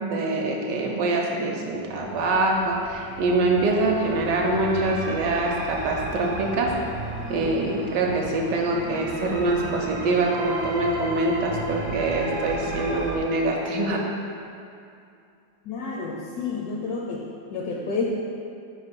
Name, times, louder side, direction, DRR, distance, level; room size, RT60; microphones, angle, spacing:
voice 1, 0.0-6.7 7.3-14.1, right 2 dB, 75° right, 0 dB, 1.2 m, -24 dB
sound 1, 1.7-13.2, right 2 dB, 50° right, 0.7 m, -34 dB
voice 2, 15.7-17.2 17.5-18.0, left 4 dB, 75° left, -2 dB, 0.9 m, -29 dB
4.7 x 4.1 x 5.2 m, 2.5 s
omnidirectional pair, 2.0 m